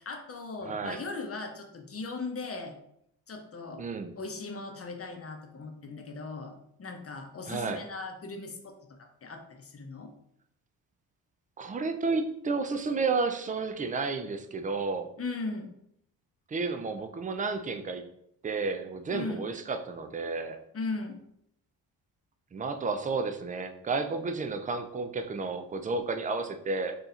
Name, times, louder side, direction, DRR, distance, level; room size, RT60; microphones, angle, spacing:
voice 1, 0.0-2.7 3.3-3.8 4.2-10.1 15.2-15.7 19.1-19.5 20.7-21.2, left 3 dB, 35° left, 5 dB, 0.7 m, -38 dB
voice 2, 0.6-1.0 3.8-4.1 7.5-7.8 11.6-15.1 16.5-18.0 18.4-20.6 22.5-26.9, right 4 dB, 20° right, 7 dB, 0.4 m, -31 dB
2.6 x 2.3 x 4.1 m, 0.73 s
supercardioid pair, 55°, 43 cm